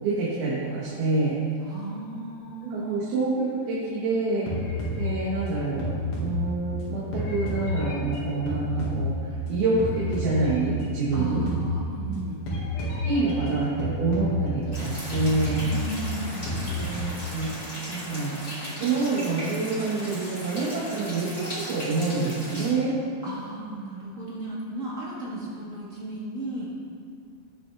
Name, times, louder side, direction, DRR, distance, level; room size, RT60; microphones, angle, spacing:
voice 1, 0.0-1.4 2.7-4.5 5.0-5.9 6.2-11.5 12.8-15.6 16.7-18.4 18.8-23.0, right 3 dB, 90° right, -8 dB, 3.6 m, -27 dB
voice 2, 1.6-3.0 11.1-12.4 15.6-16.7 23.2-26.7, right 1 dB, 35° right, -7 dB, 1.2 m, -35 dB
sound 1, 4.5-6.8 7.1-9.5 9.8-10.9 11.1-12.1 12.5-14.8 15.1-16.8, left 2 dB, 75° left, 3.8 m, -30 dB
sound 2, 14.7-22.7, equal, 15° left, 1.4 m, -37 dB
18.0 x 6.6 x 3.5 m, 2.5 s
omnidirectional pair, 4.3 m